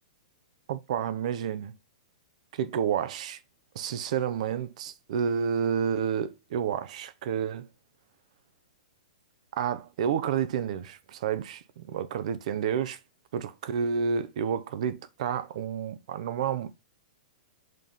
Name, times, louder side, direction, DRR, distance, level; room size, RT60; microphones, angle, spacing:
voice 1, 0.7-1.7 2.5-3.4 3.7-7.7 9.5-13.0 13.3-16.7, right 7 dB, 60° right, 0.7 m, -30 dB
5.3 x 3.9 x 5.5 m
hypercardioid pair, 130°, 4 cm